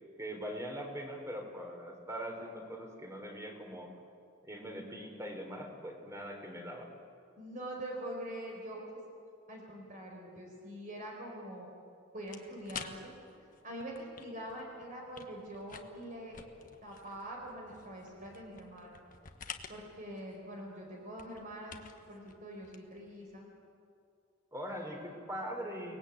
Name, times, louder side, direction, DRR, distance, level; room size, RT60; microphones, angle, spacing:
voice 1, 0.2-3.9 4.4-6.9 24.5-26.0, equal, 15° right, 3 dB, 4.1 m, -42 dB
voice 2, 7.4-8.8 9.5-11.7 12.1-13.1 13.6-16.4 16.8-19.0 19.7-21.8 22.1-23.5 24.7-24.9, right 1 dB, 40° right, -1 dB, 4.8 m, -44 dB
sound 1, 12.2-23.4, left 6 dB, 45° left, 1.5 m, -51 dB
30.0 x 20.0 x 8.8 m, 2.4 s
head